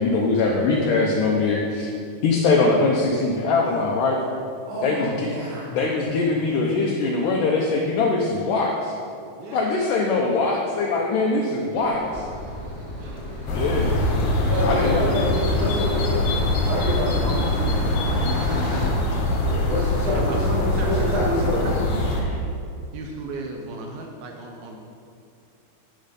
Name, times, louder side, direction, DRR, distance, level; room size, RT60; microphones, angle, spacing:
voice 1, 0.0-1.9 2.2-4.2 4.8-5.3 5.7-9.0 9.5-12.2 13.5-14.0 14.6-15.2, left 3 dB, 80° left, -1 dB, 1.9 m, -22 dB
voice 2, 4.7-5.7 14.5-16.2 16.6-18.4 19.4-21.7, equal, 50° right, -10 dB, 4.0 m, -28 dB
voice 3, 9.4-9.7 12.9-13.3 18.6-19.2 20.1-22.2 22.9-24.8, right 2 dB, 75° right, 1 dB, 2.5 m, -35 dB
sound 1, 11.7-18.9, left 1 dB, 45° left, 0.5 m, -33 dB
sound 2, 13.5-22.2, left 1 dB, 60° left, 2.1 m, -23 dB
11.0 x 6.4 x 5.1 m, 2.4 s
omnidirectional pair, 4.8 m